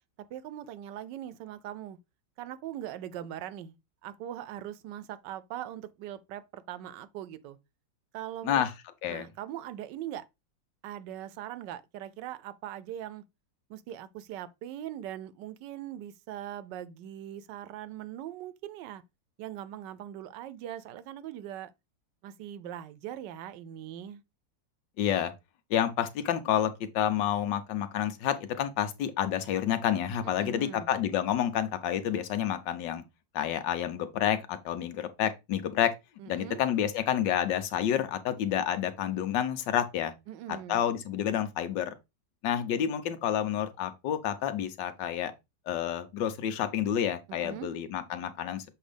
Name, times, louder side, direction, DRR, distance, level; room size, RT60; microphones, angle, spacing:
voice 1, 0.3-2.0 2.4-3.8 4.0-7.6 8.1-8.7 9.1-10.2 10.8-13.2 13.7-19.0 19.4-21.7 22.2-24.2 30.3-30.9 36.2-36.6 40.3-40.9 47.3-47.7, right 11 dB, 75° right, 1.2 m, -41 dB
voice 2, 25.0-25.3 25.7-33.0 33.3-35.9 36.3-40.1 40.5-41.9 42.4-45.3 45.7-48.6, left 10 dB, 75° left, 1.4 m, -29 dB
7.2 x 2.7 x 5.0 m
omnidirectional pair, 2.0 m